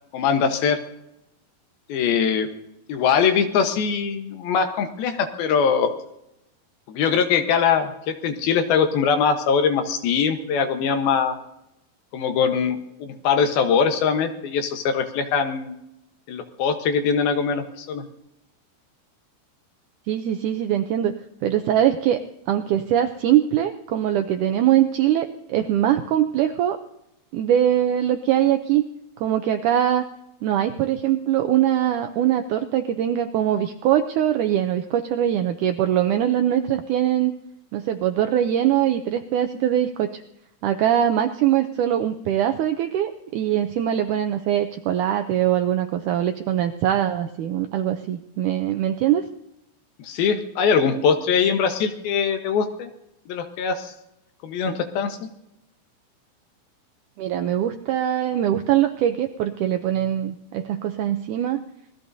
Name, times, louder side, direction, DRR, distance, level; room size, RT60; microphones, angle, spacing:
voice 1, 0.1-0.8 1.9-2.5 2.9-5.9 6.9-11.4 12.1-15.7 16.3-18.0 50.0-52.9 53.3-53.9 54.4-55.3, left 6 dB, 80° left, 6 dB, 3.0 m, -22 dB
voice 2, 20.1-21.1 21.4-26.8 27.3-28.9 29.2-30.0 30.4-37.3 37.7-40.2 40.6-49.2 57.2-61.6, right 11 dB, 80° right, 7 dB, 1.8 m, -22 dB
26.0 x 19.5 x 2.7 m, 0.86 s
omnidirectional pair, 4.3 m